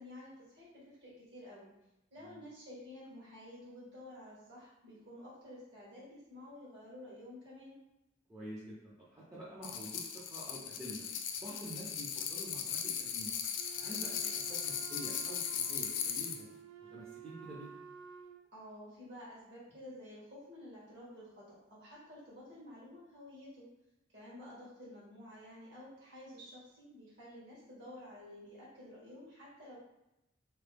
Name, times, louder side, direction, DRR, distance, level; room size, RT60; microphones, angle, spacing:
voice 1, 0.0-1.7 2.1-7.8 18.5-23.7 24.1-29.8, left 1 dB, 65° right, -7 dB, 1.4 m, -51 dB
voice 2, 8.3-11.1 11.4-13.4 13.8-16.5 16.9-17.8, right 1 dB, 15° right, -7 dB, 0.6 m, -48 dB
sound 1, 9.6-16.4, left 8 dB, 75° left, 0.4 m, -38 dB
Wind instrument woodwind instrument, 13.5-18.4, right 7 dB, 85° right, 0.3 m, -52 dB
3.0 x 2.1 x 3.3 m, 0.89 s
head